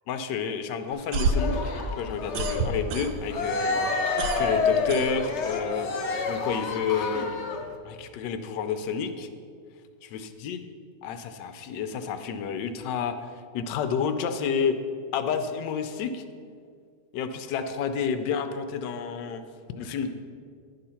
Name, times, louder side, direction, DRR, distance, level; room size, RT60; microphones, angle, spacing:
voice 1, 0.1-1.7 2.0-5.9 6.3-7.4 7.8-9.3 10.0-10.6 11.0-13.2 13.5-14.8 15.1-16.2 17.1-19.4 19.7-20.1, left 6 dB, 80° left, 9 dB, 1.2 m, -30 dB
sound 1, 0.9-3.5 3.8-5.7, right 3 dB, 70° right, 1.0 m, -29 dB
Cheering, 1.3-7.7, left 4 dB, 55° left, 0.8 m, -29 dB
10.5 x 3.8 x 5.6 m, 2.2 s
omnidirectional pair, 1.9 m